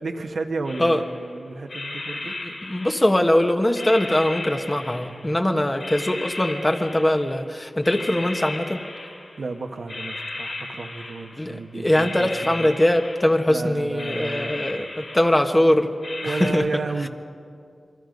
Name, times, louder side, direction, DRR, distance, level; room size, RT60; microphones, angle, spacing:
voice 1, 0.0-2.3 9.4-12.7 13.5-14.7 16.2-17.1, right 3 dB, 75° right, 4 dB, 1.5 m, -32 dB
sound 1, 0.6-1.3 1.7-3.4 3.7-5.4 5.8-7.4 7.8-9.5 9.9-11.5 11.9-13.6 14.0-15.6 16.0-16.5, left 2 dB, 70° left, 7.9 m, -35 dB
voice 2, 2.2-8.8 11.4-15.9 16.2-16.7, left 1 dB, 20° left, 5 dB, 1.3 m, -22 dB
27.0 x 23.0 x 5.3 m, 2.4 s
wide cardioid pair, 75°, 0 cm